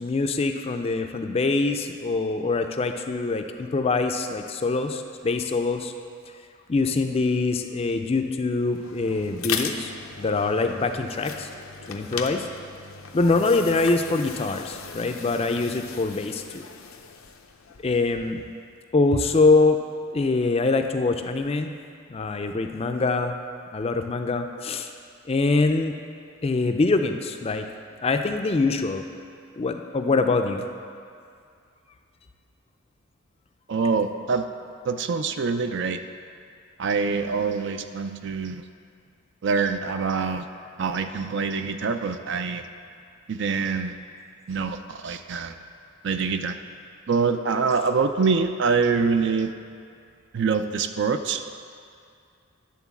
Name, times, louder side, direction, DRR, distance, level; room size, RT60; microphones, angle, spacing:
voice 1, 0.0-5.9 6.7-9.9 10.2-11.5 11.9-12.4 13.1-16.6 17.8-18.4 18.9-19.8 20.1-21.7 22.1-23.4 23.7-24.9 25.3-25.9 26.4-27.6 28.0-29.0 29.6-30.7, left 3 dB, 30° left, 6 dB, 0.4 m, -24 dB
sound 1, 8.6-18.5, left 6 dB, 85° left, 0.6 m, -37 dB
voice 2, 33.7-34.4 34.8-36.0 36.8-38.6 39.4-40.4 40.8-42.6 43.3-43.9 44.5-45.6 46.0-46.6 47.1-49.5 50.3-51.4, right 5 dB, 60° right, 8 dB, 0.4 m, -25 dB
10.5 x 3.9 x 7.0 m, 2.4 s
head